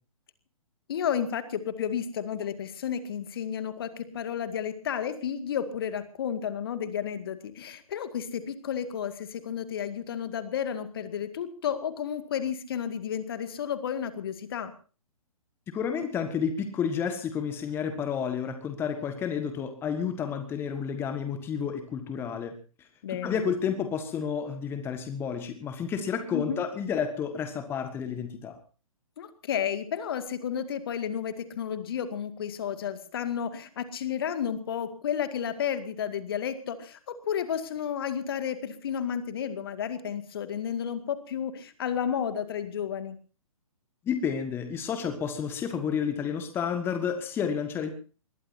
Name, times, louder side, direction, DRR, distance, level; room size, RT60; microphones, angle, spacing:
voice 1, 0.9-14.7 23.0-23.4 26.3-26.6 29.2-43.2, left 8 dB, 40° left, 10 dB, 2.0 m, -32 dB
voice 2, 15.7-22.5 23.1-28.6 44.0-47.9, left 7 dB, 15° left, 8 dB, 1.6 m, -30 dB
23.5 x 21.0 x 2.7 m, 0.37 s
figure-of-eight pair, 125°, 18 cm